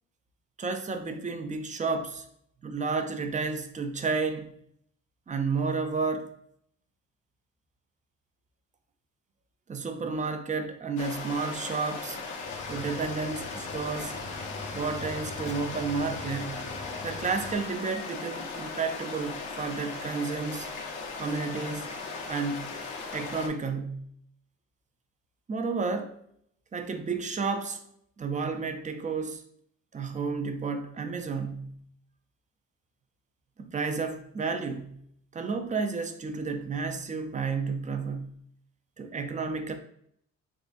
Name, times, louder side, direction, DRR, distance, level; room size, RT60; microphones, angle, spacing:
voice 1, 0.6-2.3 2.6-4.5 5.3-6.3 9.7-12.2 12.7-14.2 14.7-16.7 17.0-20.7 21.2-21.9 22.3-22.6 23.1-24.1 25.5-26.2 26.7-27.8 28.2-29.4 29.9-31.8 33.6-35.0 35.3-38.4 39.0-39.7, right 4 dB, 25° right, 0.4 m, -31 dB
sound 1, 11.0-23.5, left 4 dB, 85° left, 0.8 m, -38 dB
Cricket / Waves surf, 12.4-17.6, left 2 dB, 25° left, 0.6 m, -42 dB
3.7 x 3.2 x 2.5 m
cardioid pair, 90°, 30 cm